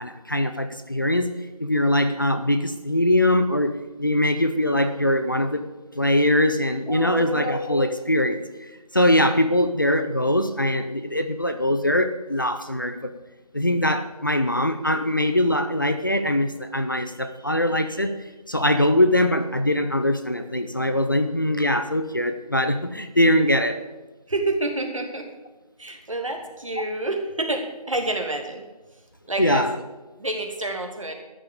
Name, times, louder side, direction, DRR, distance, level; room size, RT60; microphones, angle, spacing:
voice 1, 0.0-1.3 1.6-5.7 5.9-13.1 13.5-18.1 18.5-23.8 29.4-29.8, left 1 dB, 30° left, 8 dB, 0.6 m, -22 dB
voice 2, 6.9-7.5 24.3-25.3 25.8-28.6 29.3-29.7 30.2-31.1, right 2 dB, 55° right, 3 dB, 2.5 m, -28 dB
13.5 x 7.5 x 8.4 m, 1.1 s
figure-of-eight pair, 170°, 20 cm